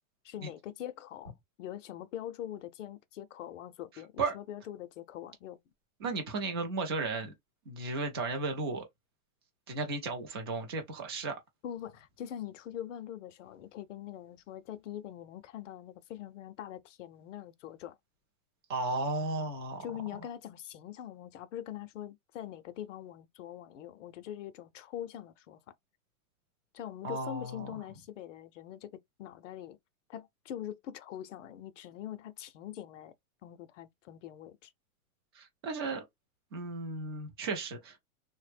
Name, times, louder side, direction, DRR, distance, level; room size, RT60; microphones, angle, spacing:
voice 1, 0.2-5.6 11.6-18.0 19.8-25.7 26.7-29.8 30.1-33.1 33.4-34.7, left 11 dB, 60° left, 0.6 m, -43 dB
voice 2, 6.0-7.3 7.7-8.9 9.7-11.4 18.7-19.8 27.0-27.7 35.3-36.0 36.5-38.0, right 3 dB, 20° right, 0.3 m, -34 dB
3.2 x 2.1 x 3.2 m
hypercardioid pair, 150°, 43 cm